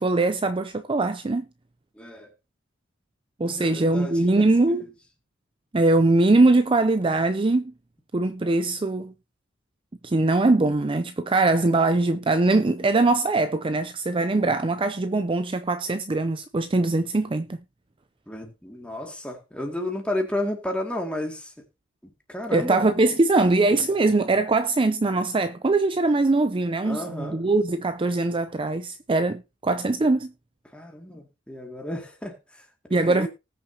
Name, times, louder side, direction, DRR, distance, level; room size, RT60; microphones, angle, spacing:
voice 1, 0.0-1.5 3.4-4.9 5.7-7.7 8.1-9.1 10.0-17.6 22.5-30.3 32.9-33.3, right 2 dB, 25° right, 0.5 m, -22 dB
voice 2, 2.0-2.3 3.4-4.5 4.8-4.9 18.3-21.5 22.0-22.9 26.8-27.4 30.7-33.3, left 1 dB, 5° left, 2.3 m, -33 dB
19.5 x 6.6 x 2.8 m
head